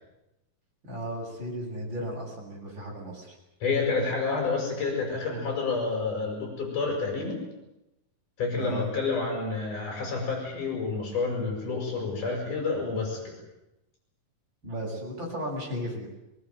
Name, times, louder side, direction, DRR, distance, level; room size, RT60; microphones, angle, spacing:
voice 1, 0.9-3.4 8.5-8.9 14.6-16.1, equal, 30° right, -2 dB, 8.8 m, -35 dB
voice 2, 3.6-7.4 8.4-13.3, left 4 dB, 60° left, 1 dB, 8.0 m, -29 dB
22.5 x 22.5 x 9.5 m, 0.92 s
omnidirectional pair, 4.0 m